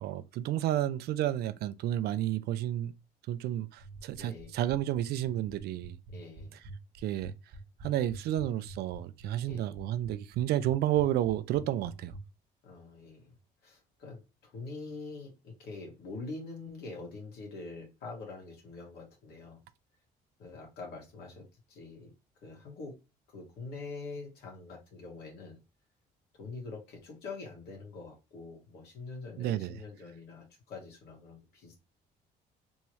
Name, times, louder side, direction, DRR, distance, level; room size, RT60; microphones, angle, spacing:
voice 1, 0.0-2.9 3.3-6.0 7.0-7.3 7.8-12.1 29.4-29.8, right 13 dB, 70° right, 0.4 m, -31 dB
sound 1, 3.8-12.2, right 1 dB, 55° right, 0.9 m, -46 dB
voice 2, 4.2-4.5 6.1-6.6 9.4-9.7 12.6-13.4 13.6-19.6 20.4-22.1 22.4-23.0 23.3-25.6 26.3-31.8, left 3 dB, 75° left, 1.8 m, -45 dB
3.6 x 3.0 x 3.1 m
cardioid pair, 110°, 17 cm